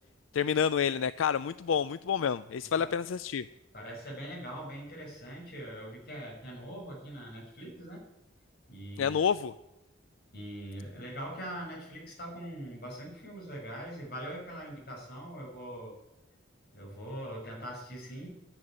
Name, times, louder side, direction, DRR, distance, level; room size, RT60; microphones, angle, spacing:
voice 1, 0.3-3.4 9.0-9.5, left 7 dB, 85° left, 15 dB, 0.4 m, -28 dB
voice 2, 3.7-8.0 8.7-9.2 10.3-16.0 16.7-18.5, right 1 dB, 50° left, -1 dB, 5.9 m, -42 dB
12.0 x 10.5 x 8.8 m, 0.94 s
head